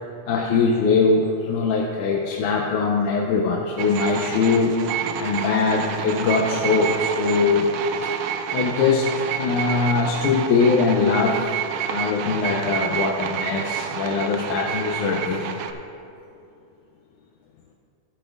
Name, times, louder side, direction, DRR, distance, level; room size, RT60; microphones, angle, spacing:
voice 1, 0.3-7.7 8.0-8.1 8.5-11.4 11.9-15.6, left 4 dB, 90° left, -1 dB, 2.2 m, -22 dB
sound 1, 3.8-15.7, right 8 dB, 90° right, 1.3 m, -29 dB
15.0 x 8.7 x 2.5 m, 2.6 s
omnidirectional pair, 3.3 m